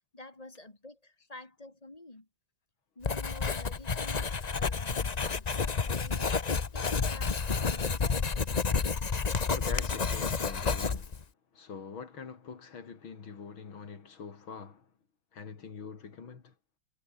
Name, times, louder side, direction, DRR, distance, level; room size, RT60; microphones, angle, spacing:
voice 1, 0.1-2.3 3.0-6.3 6.7-8.3, left 2 dB, 20° left, 2.7 m, -49 dB
Writing, 3.0-11.2, left 5 dB, 35° left, 0.7 m, -30 dB
voice 2, 9.5-11.1 11.5-14.9 15.3-16.5, left 5 dB, 85° left, 3.5 m, -44 dB
omnidirectional pair, 2.2 m